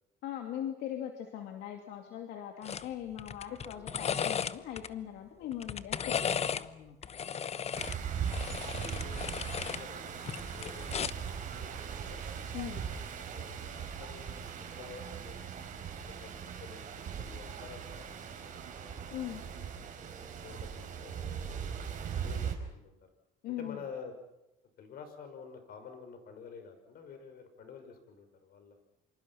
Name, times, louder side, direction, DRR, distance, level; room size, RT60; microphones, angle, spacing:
voice 1, 0.2-7.0 12.5-12.8 19.1-19.4 23.4-23.8, left 10 dB, 85° left, 4 dB, 2.6 m, -40 dB
sound 1, 2.6-2.9 3.2-4.9 5.5-6.7 7.0-9.8 10.2-11.3 12.5-12.7, left 7 dB, 40° left, 1.0 m, -35 dB
sound 2, 7.7-22.5, right 7 dB, 50° right, 4.6 m, -39 dB
voice 2, 8.6-9.2 9.6-12.2 12.7-12.8 13.3-14.5 14.8-15.3 15.7-15.8 16.2-19.5 20.3-23.0 23.5-24.1 24.8-28.8, left 6 dB, 65° left, 7 dB, 6.2 m, -50 dB
28.0 x 26.0 x 5.9 m, 0.89 s
cardioid pair, 110°, 17 cm